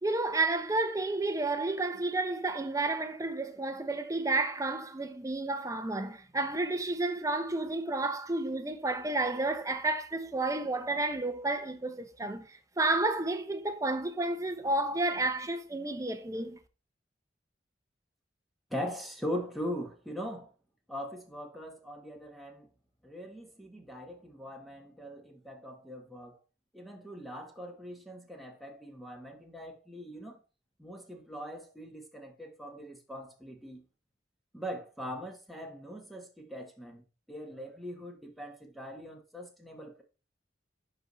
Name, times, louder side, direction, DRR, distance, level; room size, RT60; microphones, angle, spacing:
voice 1, 0.0-16.6, right 2 dB, 20° right, 0.7 m, -31 dB
voice 2, 18.7-20.5 20.9-22.7 23.0-26.4 26.7-30.4 30.8-33.8 34.5-40.0, equal, ahead, 1.2 m, -41 dB
11.0 x 4.0 x 3.1 m
head